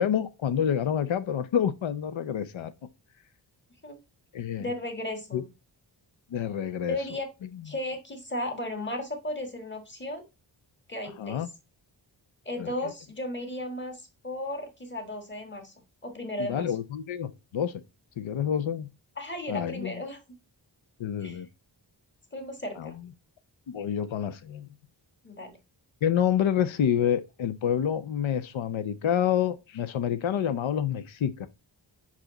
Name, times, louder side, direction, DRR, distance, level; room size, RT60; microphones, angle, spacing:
voice 1, 0.0-2.7 4.3-4.7 5.3-5.4 6.3-7.0 11.2-11.5 12.6-12.7 16.4-17.7 18.2-18.9 19.5-19.9 21.0-21.5 22.8-22.9 23.7-24.7 26.0-31.5, left 9 dB, 90° left, 0.6 m, -28 dB
voice 2, 4.6-5.4 6.9-7.3 7.6-10.2 10.9-11.5 12.4-15.7 16.0-16.7 19.2-20.2 21.2-21.4 22.3-23.0 25.2-25.6, left 1 dB, 25° left, 1.6 m, -35 dB
5.6 x 5.0 x 3.8 m
wide cardioid pair, 130°, 45 cm